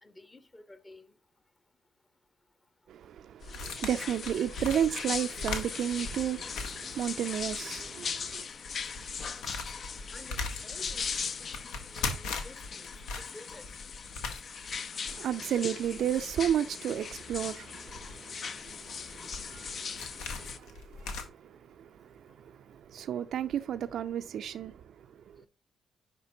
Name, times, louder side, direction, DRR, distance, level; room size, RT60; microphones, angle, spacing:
voice 1, 0.0-1.1 10.1-11.3 11.6-12.9 13.3-13.7 25.4-25.5, left 2 dB, 25° left, 1.1 m, -52 dB
voice 2, 2.9-8.5 15.1-25.5, right 9 dB, 65° right, 0.4 m, -33 dB
sound 1, 3.4-7.6 7.9-8.0 8.4-21.2, left 3 dB, 70° left, 1.1 m, -40 dB
sound 2, 3.5-20.6, left 6 dB, 50° left, 0.6 m, -39 dB
10.5 x 4.4 x 2.7 m
hypercardioid pair, 45°, 0 cm